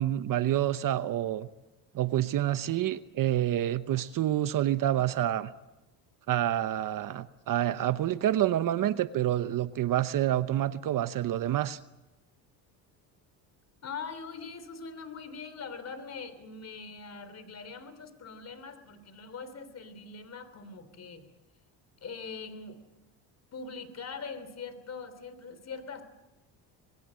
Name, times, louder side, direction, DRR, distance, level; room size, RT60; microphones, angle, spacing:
voice 1, 0.0-1.5 1.9-5.5 6.3-11.8, right 12 dB, 50° right, 12 dB, 1.0 m, -28 dB
voice 2, 13.8-21.3 22.0-22.8 23.5-26.0, left 5 dB, 35° left, 12 dB, 3.4 m, -42 dB
26.5 x 21.5 x 7.7 m, 1.0 s
cardioid pair, 120°, 43 cm